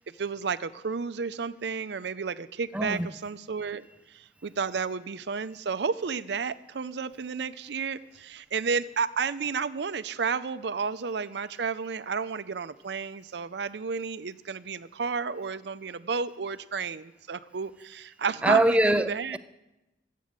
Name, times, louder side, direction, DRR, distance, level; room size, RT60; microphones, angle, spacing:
voice 1, 0.0-3.8 4.1-19.4, right 5 dB, 75° right, 0.5 m, -32 dB
voice 2, 2.7-3.1 18.4-19.4, right 1 dB, 5° right, 0.5 m, -23 dB
12.5 x 8.3 x 7.4 m
head